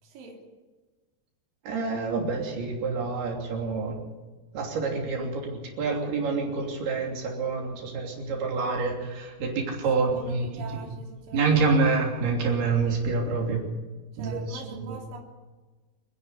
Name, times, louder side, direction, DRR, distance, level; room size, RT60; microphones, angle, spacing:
voice 1, 0.0-0.4 10.0-11.8 14.2-15.2, right 4 dB, 65° right, 0 dB, 4.6 m, -43 dB
voice 2, 1.6-3.9 4.5-10.8 11.3-13.6 14.2-15.0, right 4 dB, 85° right, 0 dB, 5.1 m, -27 dB
28.0 x 11.0 x 9.7 m, 1.2 s
omnidirectional pair, 4.4 m